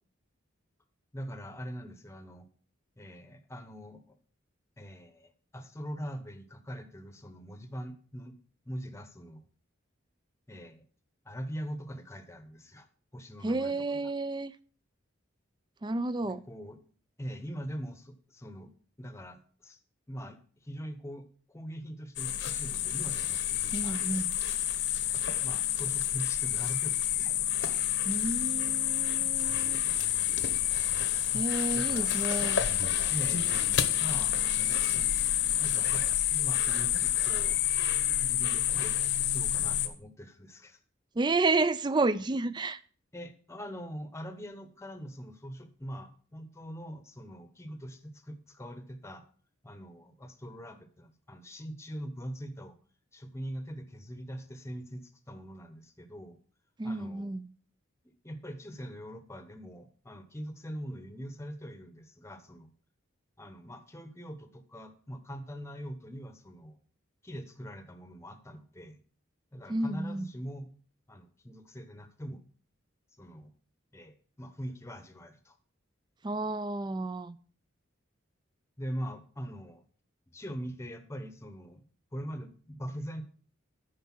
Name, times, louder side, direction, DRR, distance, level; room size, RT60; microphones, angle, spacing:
voice 1, 1.1-2.5 3.0-4.1 4.8-8.4 8.7-9.4 10.5-10.8 11.2-12.9 13.1-14.1 16.2-16.8 17.2-18.7 19.0-19.8 20.1-23.5 23.8-24.3 25.4-27.3 31.7-32.1 33.1-33.7 34.0-34.3 35.6-37.6 38.2-40.8 43.1-49.2 49.6-52.8 53.1-56.4 56.8-57.3 58.2-62.7 63.4-66.8 67.2-69.0 69.5-70.7 71.1-72.4 73.2-73.5 73.9-75.5 78.8-79.8 80.3-81.8 82.1-83.2, equal, 15° left, 0.9 m, -42 dB
voice 2, 13.4-14.5 15.8-16.4 23.7-24.3 28.0-29.8 31.3-32.6 41.2-42.8 56.8-57.4 69.7-70.3 76.2-77.4, right 2 dB, 20° right, 0.4 m, -31 dB
sound 1, 22.2-39.9, left 11 dB, 60° left, 0.9 m, -29 dB
9.5 x 5.3 x 6.0 m
head